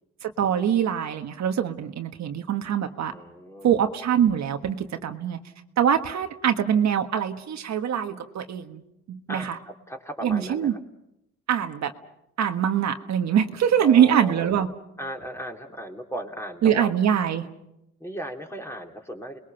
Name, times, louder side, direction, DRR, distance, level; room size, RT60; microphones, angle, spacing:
voice 1, 0.2-3.1 3.6-5.4 5.8-8.8 9.1-9.6 10.2-10.8 11.5-11.9 12.4-14.7 16.6-17.5, right 9 dB, 65° right, 6 dB, 1.4 m, -23 dB
voice 2, 3.1-3.7 9.3-9.6 9.9-10.8 13.8-14.5 15.0-16.9 18.0-19.4, right 1 dB, 10° left, 2 dB, 3.2 m, -36 dB
30.0 x 21.0 x 5.8 m, 0.85 s
cardioid pair, 90°, 30 cm